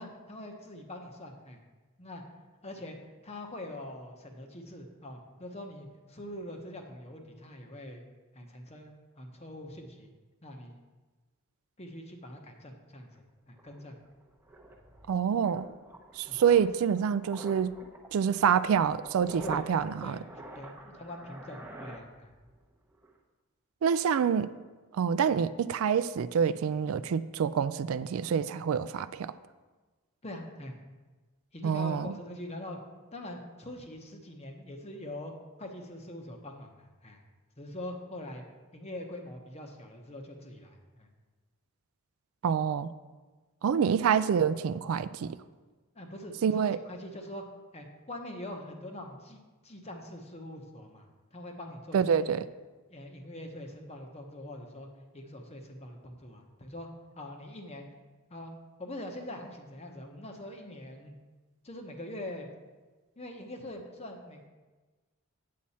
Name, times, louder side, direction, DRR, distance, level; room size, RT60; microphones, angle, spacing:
voice 1, 0.0-1.6 2.0-2.2 2.6-3.0 3.2-8.0 8.3-10.1 10.4-10.8 11.8-14.0 16.3-16.4 19.4-19.6 20.0-20.2 20.5-22.3 30.2-30.7 31.5-32.8 33.1-35.3 35.6-37.2 37.6-38.4 38.7-41.1 45.9-47.4 47.7-51.1 51.3-52.4 52.9-54.9 55.1-56.9 57.1-57.9 58.3-58.5 58.8-61.1 61.6-62.5 63.2-64.5, left 1 dB, 30° left, 3 dB, 0.9 m, -43 dB
sound 1, 13.2-13.3 13.6-22.6 22.9-23.2, right 2 dB, 10° right, 0.8 m, -47 dB
voice 2, 15.1-15.7 16.2-17.7 18.1-20.2 23.8-24.5 24.9-29.3 31.6-32.1 42.4-42.9 43.6-45.4 46.4-46.8 51.9-52.5, right 7 dB, 70° right, 14 dB, 0.3 m, -27 dB
8.5 x 7.6 x 4.2 m, 1.3 s
head